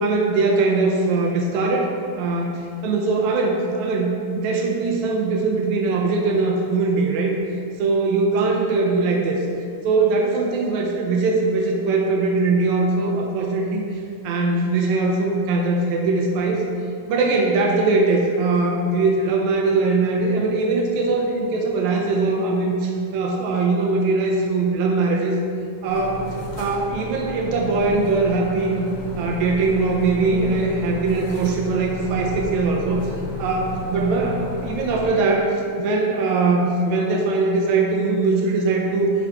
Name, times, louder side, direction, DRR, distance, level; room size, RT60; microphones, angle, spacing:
voice 1, 0.0-7.4 7.8-9.4 9.8-16.6 17.1-25.4 25.8-26.2 26.6-28.8 29.2-33.0 33.4-39.1, right 3 dB, 90° right, 0 dB, 1.6 m, -21 dB
sound 1, 25.8-35.1, left 2 dB, 90° left, 1.2 m, -33 dB
11.0 x 3.7 x 3.4 m, 2.3 s
omnidirectional pair, 4.0 m